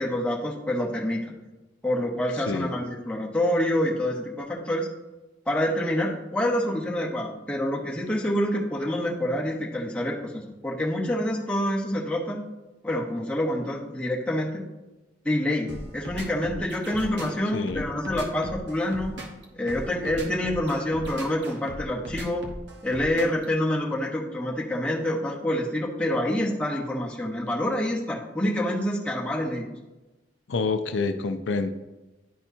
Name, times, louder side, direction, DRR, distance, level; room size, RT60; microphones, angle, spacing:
voice 1, 0.0-1.4 1.8-4.9 5.5-12.4 12.8-14.6 15.2-19.2 19.6-22.5 22.8-29.7, left 1 dB, 5° left, -3 dB, 0.9 m, -27 dB
sound 1, 15.7-23.4, right 1 dB, 70° right, 1.1 m, -38 dB
voice 2, 17.5-17.9 30.5-31.7, left 4 dB, 85° left, 9 dB, 0.5 m, -27 dB
11.0 x 4.3 x 2.7 m, 1.1 s
head